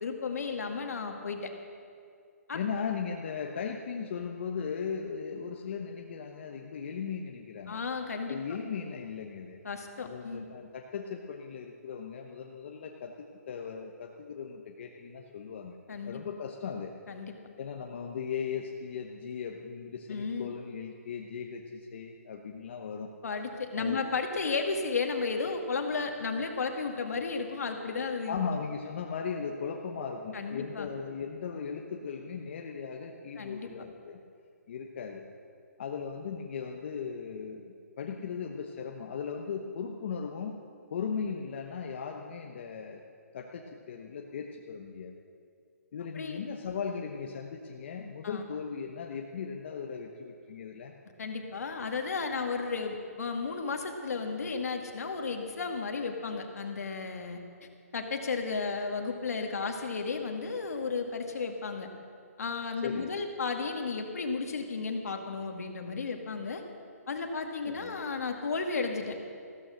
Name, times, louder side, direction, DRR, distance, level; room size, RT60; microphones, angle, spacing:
voice 1, 0.0-1.5 2.5-2.6 7.7-8.4 9.6-10.5 15.9-16.2 17.1-17.4 20.1-20.5 23.2-28.4 30.3-30.9 33.4-33.7 46.1-46.4 48.2-48.4 51.2-57.4 57.9-61.9 62.4-66.6 67.1-69.2, left 4 dB, 70° left, 4 dB, 2.0 m, -33 dB
voice 2, 2.5-7.8 8.3-9.6 10.0-15.8 16.1-16.9 17.6-23.1 23.7-24.0 28.3-34.2 34.7-35.2 35.8-40.6 40.9-43.0 43.3-45.1 45.9-50.9 62.8-63.1 67.6-68.0, left 6 dB, 45° left, 2 dB, 1.0 m, -37 dB
15.0 x 13.0 x 6.4 m, 2.3 s
hypercardioid pair, 165°, 9 cm